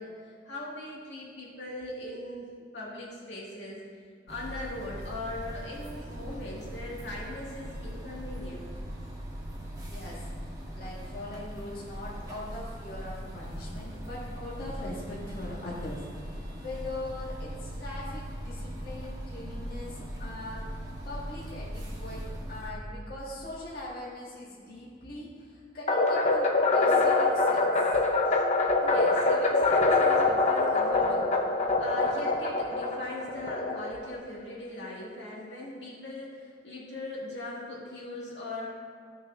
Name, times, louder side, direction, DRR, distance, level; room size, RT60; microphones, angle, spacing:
voice 1, 0.0-3.9 4.3-8.6 28.3-28.4 28.8-31.4 31.8-38.7, left 1 dB, 80° left, -5 dB, 2.2 m, -40 dB
sound 1, 4.3-22.7, equal, 20° right, 1.4 m, -40 dB
voice 2, 9.8-10.2 10.7-27.7, left 1 dB, 55° left, -7 dB, 2.0 m, -41 dB
sound 2, 25.9-34.2, left 3 dB, 40° left, 0.9 m, -24 dB
15.5 x 6.4 x 2.7 m, 2.1 s
head